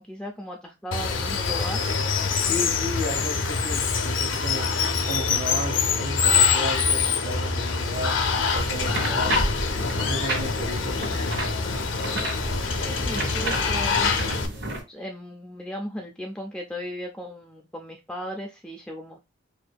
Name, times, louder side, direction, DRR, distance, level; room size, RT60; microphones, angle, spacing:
voice 1, 0.0-1.8 12.8-19.2, equal, 5° left, 1 dB, 0.3 m, -36 dB
Water, 0.9-14.5, left 5 dB, 75° left, 0.6 m, -25 dB
voice 2, 2.4-4.7 5.0-8.1 8.5-11.1, equal, 45° right, 1 dB, 1.4 m, -34 dB
sound 1, 8.6-14.8, right 2 dB, 75° right, 1.6 m, -32 dB
4.3 x 2.6 x 2.3 m, 0.25 s
head